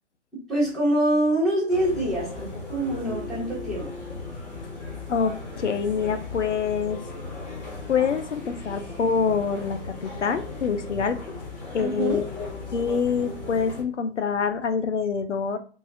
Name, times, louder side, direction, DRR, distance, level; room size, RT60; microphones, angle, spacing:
voice 1, 0.5-3.9 11.8-12.2, right 1 dB, ahead, -8 dB, 0.6 m, -25 dB
sound 1, 1.7-13.8, left 3 dB, 40° left, 0.9 m, -37 dB
voice 2, 5.1-7.0 7.9-11.2 11.7-12.5 12.7-15.6, left 6 dB, 80° left, 8 dB, 0.5 m, -26 dB
3.2 x 2.1 x 2.5 m, 0.40 s
figure-of-eight pair, 125°, 35 cm